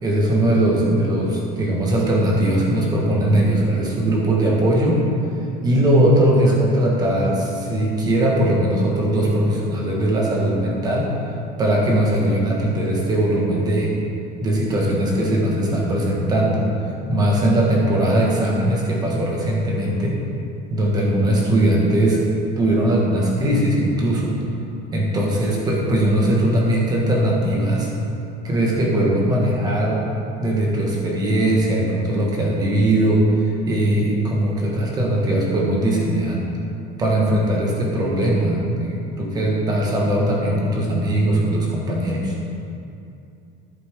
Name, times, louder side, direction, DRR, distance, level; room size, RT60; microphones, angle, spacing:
voice 1, 0.0-5.0 5.6-11.1 11.6-13.9 14.4-16.7 17.1-20.2 20.7-22.2 22.6-24.3 24.9-27.9 28.4-30.0 30.4-36.4 37.0-42.3, right 1 dB, 20° right, -3 dB, 1.5 m, -20 dB
11.0 x 8.4 x 3.6 m, 2.6 s
cardioid pair, 175°, 20 cm